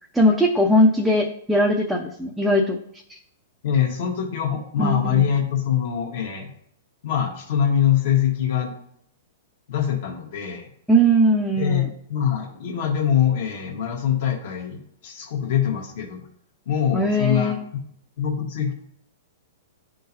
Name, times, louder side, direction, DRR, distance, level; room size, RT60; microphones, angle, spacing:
voice 1, 0.1-2.8 3.1-3.2 4.8-5.3 10.9-11.9 16.9-17.6, equal, ahead, -2 dB, 0.5 m, -19 dB
voice 2, 3.6-6.5 7.0-8.7 9.7-10.7 11.6-16.2 16.6-17.5 18.2-18.7, left 9 dB, 60° left, 2 dB, 1.4 m, -23 dB
10.5 x 3.7 x 2.8 m, 0.69 s
hypercardioid pair, 150°, 0 cm